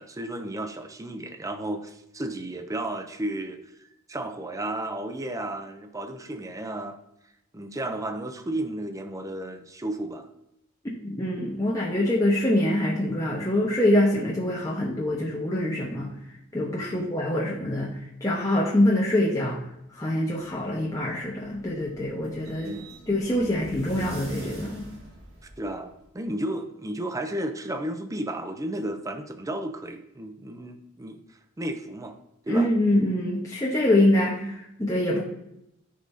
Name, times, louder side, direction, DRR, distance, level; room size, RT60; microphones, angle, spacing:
voice 1, 0.0-7.0 7.5-10.3 16.8-17.2 22.6-22.9 25.6-31.2 31.6-32.2 32.4-32.7, right 1 dB, 15° right, 7 dB, 0.6 m, -33 dB
voice 2, 11.0-16.1 16.5-19.6 19.9-22.7 23.1-24.8 32.5-35.2, left 1 dB, 15° left, -4 dB, 1.1 m, -24 dB
sound 1, 21.0-26.0, right 1 dB, 50° right, 2.8 m, -43 dB
14.0 x 5.2 x 2.7 m, 0.82 s
head